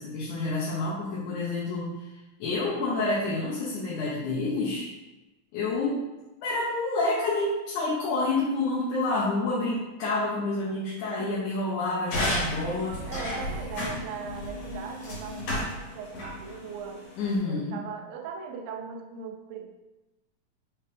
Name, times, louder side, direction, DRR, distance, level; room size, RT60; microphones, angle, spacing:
voice 1, 0.0-2.1 2.4-4.9 5.5-6.1 6.4-13.0 17.2-17.8, left 2 dB, 80° left, -7 dB, 2.2 m, -28 dB
sound 1, 12.1-17.3, left 1 dB, 60° left, 2.7 m, -33 dB
voice 2, 13.1-17.0 17.5-19.7, right 6 dB, 85° right, 3 dB, 1.5 m, -39 dB
5.6 x 2.8 x 3.3 m, 1.1 s
omnidirectional pair, 3.6 m